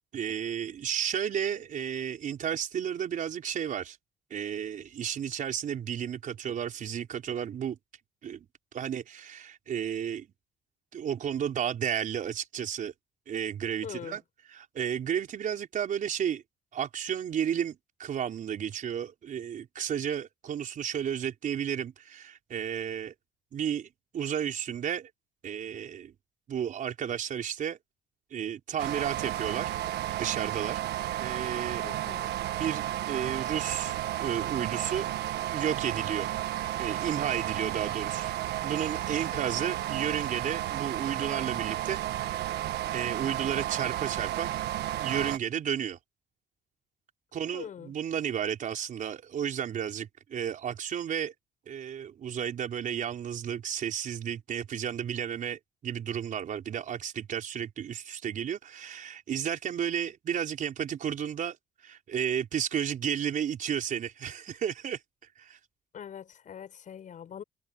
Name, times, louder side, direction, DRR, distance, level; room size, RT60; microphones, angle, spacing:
voice 1, 0.1-4.0 4.3-7.8 8.2-8.5 8.7-10.3 10.9-12.9 13.3-14.2 14.5-16.4 16.7-23.1 23.5-25.1 25.4-26.1 26.5-27.8 28.3-29.7 30.2-30.8 31.2-31.8 32.6-35.1 35.5-36.3 36.8-38.3 38.6-42.0 42.9-44.5 45.0-46.0 47.3-51.3 51.7-61.6 61.8-65.0 65.4-65.6, right 9 dB, 50° right, 4.8 m, -32 dB
voice 2, 13.8-14.2 31.0-31.2 31.8-32.3 39.3-39.8 47.5-47.9 65.9-67.4, left 8 dB, 50° left, 7.0 m, -43 dB
sound 1, 28.8-45.4, right 13 dB, 75° right, 1.4 m, -32 dB
cardioid pair, 110°, 17 cm